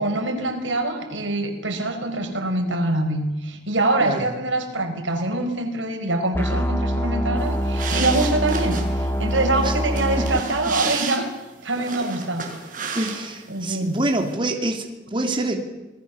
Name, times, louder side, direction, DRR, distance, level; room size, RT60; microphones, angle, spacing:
voice 1, 0.0-11.3 11.6-12.7 13.5-14.0, right 2 dB, 90° right, 5 dB, 4.9 m, -24 dB
sound 1, 6.3-10.4, equal, 10° left, 1.6 m, -24 dB
sound 2, 7.4-13.6 13.8-14.3, right 5 dB, 45° right, 5.6 m, -32 dB
voice 2, 12.9-15.5, right 1 dB, 25° right, 3 dB, 3.0 m, -26 dB
28.0 x 19.5 x 7.1 m, 1.1 s
head